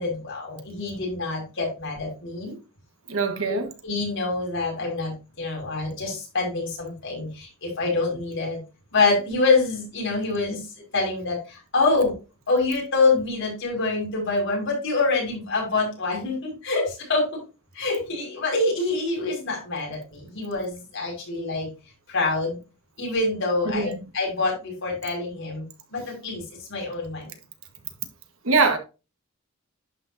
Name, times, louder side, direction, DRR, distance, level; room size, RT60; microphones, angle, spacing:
voice 1, 0.0-2.6 3.5-3.6 3.8-8.6 8.9-10.7 10.9-12.1 12.5-17.4 17.7-21.7 22.1-22.6 23.0-25.6 25.9-27.3, left 3 dB, 60° left, 5.5 m, -26 dB
voice 2, 3.1-3.7 23.6-23.9 28.4-28.8, right 4 dB, 70° right, 1.5 m, -22 dB
11.0 x 6.1 x 2.7 m
head